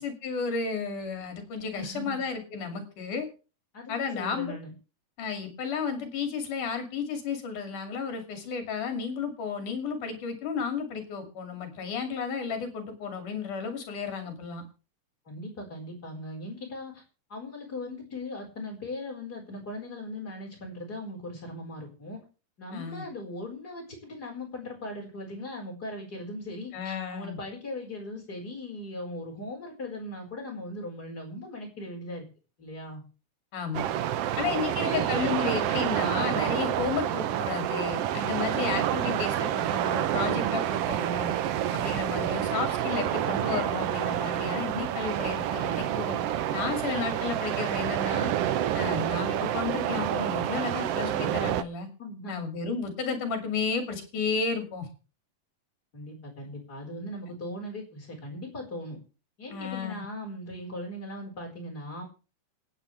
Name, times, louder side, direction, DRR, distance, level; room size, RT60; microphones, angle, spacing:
voice 1, 0.0-3.3 3.9-4.5 5.2-14.6 22.7-23.0 26.7-27.4 33.5-33.9 34.4-41.3 41.7-46.2 46.5-48.3 48.7-51.9 52.3-54.9 59.5-60.1, left 5 dB, 70° left, 6 dB, 3.9 m, -32 dB
voice 2, 1.7-2.2 3.7-4.7 15.3-17.0 17.3-22.2 22.6-32.2 32.6-33.0 34.8-35.6 52.0-52.4 55.9-59.0 59.4-62.0, left 1 dB, 30° left, -1 dB, 4.9 m, -39 dB
sound 1, 33.7-51.6, right 11 dB, 90° right, 1.3 m, -28 dB
27.0 x 9.0 x 3.3 m, 0.34 s
omnidirectional pair, 3.7 m